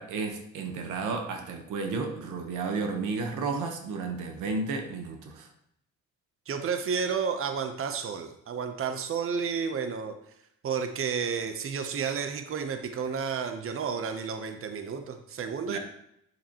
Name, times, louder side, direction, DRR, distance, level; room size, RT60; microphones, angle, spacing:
voice 1, 0.0-5.5 15.7-15.8, right 4 dB, 90° right, 5 dB, 1.2 m, -32 dB
voice 2, 6.5-10.1 10.6-15.8, right 6 dB, 45° right, 7 dB, 0.9 m, -31 dB
8.0 x 7.2 x 3.0 m, 0.76 s
cardioid pair, 90°, 30 cm